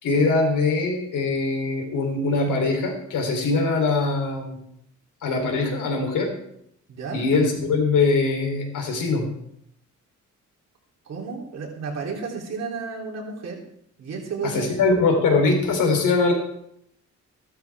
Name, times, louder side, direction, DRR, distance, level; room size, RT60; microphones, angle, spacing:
voice 1, 0.0-4.6 5.2-6.3 7.1-9.3 14.4-16.3, left 3 dB, 80° left, 2 dB, 3.6 m, -22 dB
voice 2, 6.9-7.2 11.0-13.6 14.0-14.7, right 5 dB, 55° right, -2 dB, 3.4 m, -32 dB
15.0 x 12.5 x 3.6 m, 0.74 s
cardioid pair, 160°, 31 cm